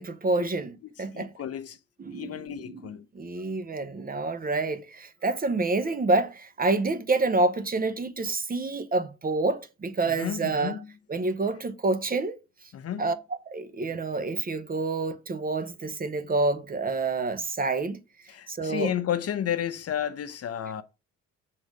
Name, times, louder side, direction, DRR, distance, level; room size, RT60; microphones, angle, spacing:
voice 1, 0.0-1.3 2.0-10.8 11.1-12.4 13.0-18.0 18.5-18.9, right 3 dB, 30° right, 0.8 m, -28 dB
voice 2, 1.1-1.8 2.1-3.1 10.0-10.9 12.7-13.1 18.3-20.8, left 9 dB, 55° left, 0.7 m, -32 dB
6.2 x 3.8 x 4.8 m
cardioid pair, 90°, 30 cm